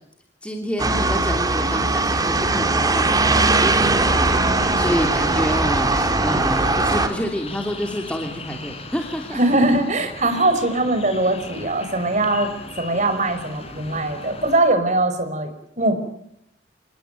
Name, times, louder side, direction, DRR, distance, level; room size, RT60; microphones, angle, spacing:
voice 1, 0.4-9.4, equal, 5° left, 3 dB, 2.9 m, -28 dB
sound 1, 0.8-7.1, right 2 dB, 20° right, 3.3 m, -20 dB
sound 2, 2.8-14.6, left 2 dB, 35° left, 5.6 m, -38 dB
voice 2, 9.3-12.5 12.8-15.5 15.8-16.0, right 2 dB, 40° right, 8 dB, 5.5 m, -21 dB
28.0 x 19.5 x 9.2 m, 0.76 s
head